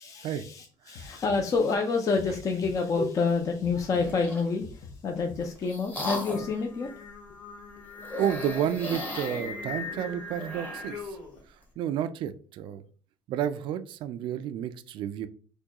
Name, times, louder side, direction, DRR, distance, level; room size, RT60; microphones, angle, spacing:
voice 1, 0.0-6.9, left 4 dB, 35° left, 3 dB, 0.5 m, -28 dB
sound 1, 1.0-3.3 3.6-6.0, left 5 dB, 60° left, 0.8 m, -45 dB
sound 2, 3.9-4.5 5.2-6.6 8.0-11.0, left 1 dB, 15° left, 1.0 m, -37 dB
Singing, 6.3-11.4, left 4 dB, 90° left, 1.2 m, -41 dB
voice 2, 8.2-11.2 11.8-12.8 13.3-15.3, right 9 dB, 55° right, 12 dB, 0.4 m, -31 dB
4.4 x 2.3 x 2.9 m, 0.41 s
cardioid pair, 130°, 10 cm